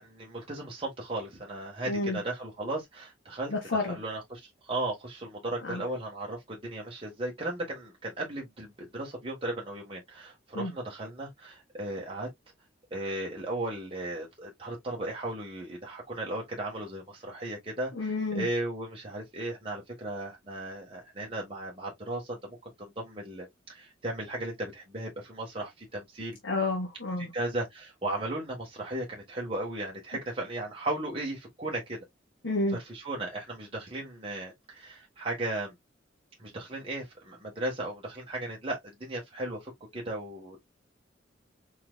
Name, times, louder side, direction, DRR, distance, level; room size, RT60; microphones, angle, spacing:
voice 1, 0.0-3.5 3.9-12.3 12.9-26.4 27.3-32.0 32.7-35.7 36.4-40.6, right 1 dB, 30° right, 1.4 m, -36 dB
voice 2, 1.8-2.2 3.5-4.0 5.6-5.8 10.5-10.7 17.9-18.5 26.4-27.3 32.4-32.8, left 2 dB, 70° left, 1.3 m, -30 dB
4.4 x 3.7 x 2.3 m
head